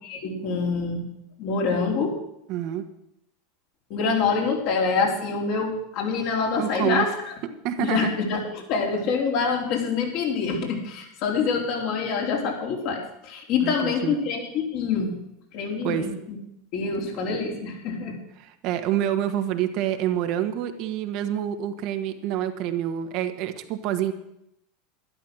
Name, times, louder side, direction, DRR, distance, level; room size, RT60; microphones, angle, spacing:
voice 1, 0.0-1.1 1.4-2.2 3.9-7.3 7.8-15.2 15.5-16.4 16.7-18.2, left 5 dB, 55° left, 0 dB, 4.2 m, -26 dB
voice 2, 2.5-2.9 6.6-7.1 7.6-8.1 13.6-14.1 15.8-16.1 18.4-24.1, right 11 dB, 55° right, 7 dB, 1.5 m, -27 dB
12.0 x 11.5 x 6.4 m, 0.78 s
hypercardioid pair, 90°, 0 cm